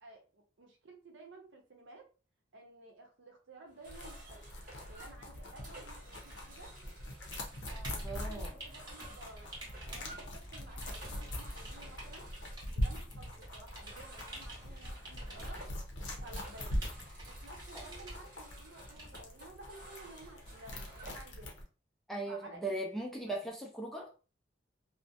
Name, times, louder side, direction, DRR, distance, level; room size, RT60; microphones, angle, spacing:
voice 1, 0.0-2.1 2.5-4.5 4.9-6.8 7.6-9.5 9.9-12.3 12.8-15.7 16.2-16.8 17.2-21.5 22.3-22.7 23.3-23.4, right 2 dB, 70° right, 2 dB, 0.7 m, -54 dB
sound 1, 3.7-21.3, right 1 dB, 45° right, 1.0 m, -54 dB
sound 2, 3.9-21.6, equal, 65° left, 0.6 m, -42 dB
sound 3, 6.1-19.3, right 1 dB, 20° right, 0.8 m, -50 dB
voice 2, 8.0-8.5 17.8-18.0 22.1-24.1, right 2 dB, ahead, -1 dB, 0.4 m, -38 dB
2.5 x 2.0 x 2.6 m, 0.34 s
head